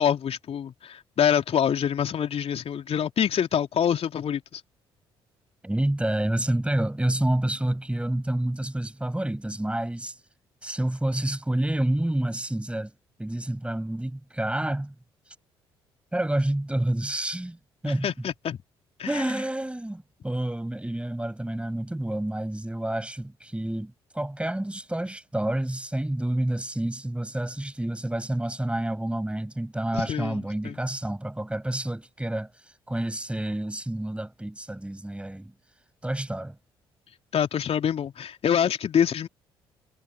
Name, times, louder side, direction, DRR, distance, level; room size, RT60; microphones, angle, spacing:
voice 1, 0.0-4.6 17.9-18.6 19.0-19.2 29.9-30.8 37.3-39.3, left 8 dB, 50° left, 3.2 m, -26 dB
voice 2, 5.6-10.2 10.6-12.9 13.2-14.9 16.1-17.6 17.8-18.1 19.0-35.5 36.0-36.6, right 1 dB, 10° right, 7.1 m, -28 dB
figure-of-eight pair, 45°, 13 cm